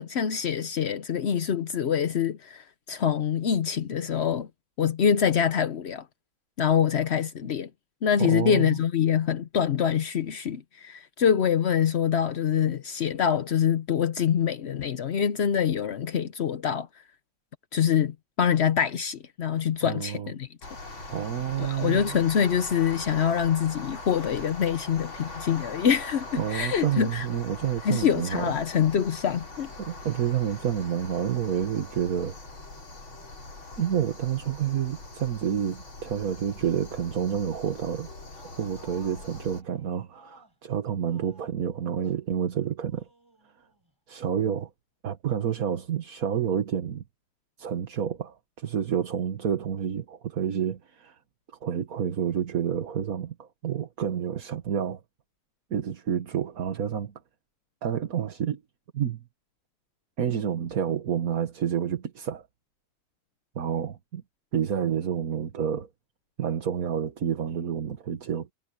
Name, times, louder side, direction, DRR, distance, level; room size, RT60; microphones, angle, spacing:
voice 1, 0.0-4.5 4.8-6.1 6.6-7.7 8.0-16.9 17.7-20.5 21.6-27.3 27.8-29.7, left 8 dB, 65° left, 0.6 m, -25 dB
voice 2, 8.2-8.8 19.9-20.3 21.1-22.2 26.4-28.5 29.8-32.4 33.8-38.1 38.6-43.1 44.1-44.7 45.0-47.0 47.6-51.1 51.6-55.0 55.7-57.1 57.8-58.6 58.9-59.2 60.2-62.5 63.5-64.2 64.5-65.9 66.4-68.5, right 8 dB, 50° right, 1.8 m, -29 dB
sound 1, 20.6-39.6, left 2 dB, 90° left, 5.8 m, -42 dB
sound 2, 38.3-40.7 41.1-42.3 42.9-43.9, equal, 10° right, 4.5 m, -57 dB
omnidirectional pair, 2.1 m